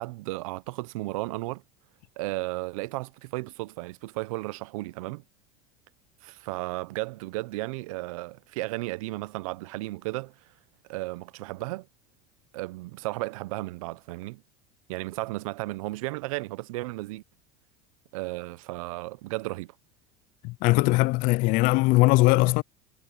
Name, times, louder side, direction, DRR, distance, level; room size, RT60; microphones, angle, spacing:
voice 1, 0.0-1.6 2.2-5.2 6.2-10.3 10.9-11.9 12.5-14.4 14.9-17.2 18.1-19.7, right 21 dB, 90° right, 0.6 m, -34 dB
voice 2, 20.4-22.6, left 22 dB, 55° left, 0.4 m, -20 dB
supercardioid pair, 140°, 17 cm